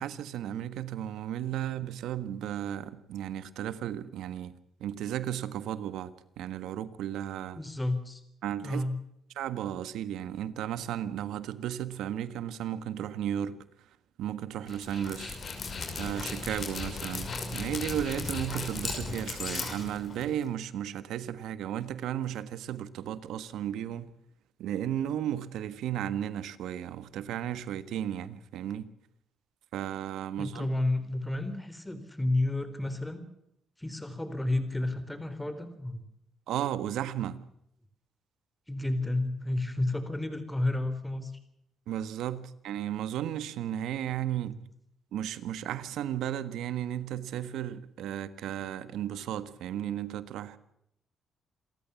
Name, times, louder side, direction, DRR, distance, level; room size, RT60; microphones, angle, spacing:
voice 1, 0.0-4.5 4.8-6.1 6.4-7.6 8.4-8.8 9.4-13.6 14.2-15.4 15.9-24.1 24.6-28.9 29.7-30.7 36.5-37.4 41.9-44.5 45.1-50.6, right 11 dB, 85° right, 1.5 m, -34 dB
voice 2, 7.6-8.2 8.6-9.0 30.4-33.2 33.8-36.0 38.7-41.3 44.4-44.6, left 2 dB, 10° left, 4.0 m, -31 dB
Dog, 14.7-20.5, left 4 dB, 45° left, 5.9 m, -36 dB
28.0 x 14.0 x 7.2 m
cardioid pair, 90°, 0 cm